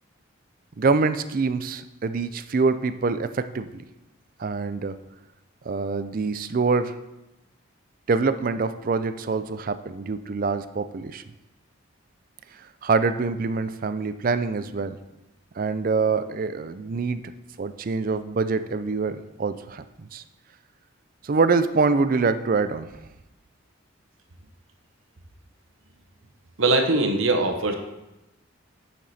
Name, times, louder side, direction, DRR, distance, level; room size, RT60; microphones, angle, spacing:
voice 1, 0.8-3.8 4.4-5.0 5.7-7.0 8.1-11.2 12.8-15.0 15.6-17.2 17.6-20.2 21.2-22.9, right 4 dB, 40° right, 12 dB, 0.4 m, -25 dB
voice 2, 26.6-27.7, right 2 dB, 70° right, 5 dB, 1.0 m, -21 dB
9.1 x 5.9 x 4.2 m, 0.97 s
head